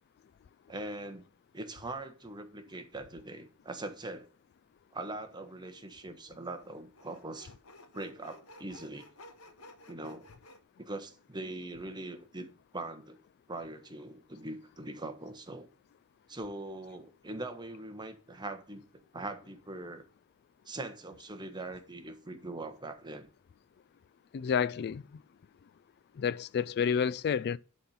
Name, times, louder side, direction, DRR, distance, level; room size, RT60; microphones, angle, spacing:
voice 1, 0.7-1.2 1.5-4.3 4.9-7.5 7.9-9.0 9.9-10.2 10.8-13.2 13.5-15.7 16.3-18.8 19.1-20.0 20.7-23.3, right 2 dB, 20° right, 1.3 m, -41 dB
Sawing, 5.3-5.4 6.4-10.6, left 2 dB, 70° left, 1.4 m, -54 dB
voice 2, 24.3-25.0 26.2-27.6, left 7 dB, 50° left, 0.3 m, -29 dB
11.0 x 4.4 x 5.4 m
head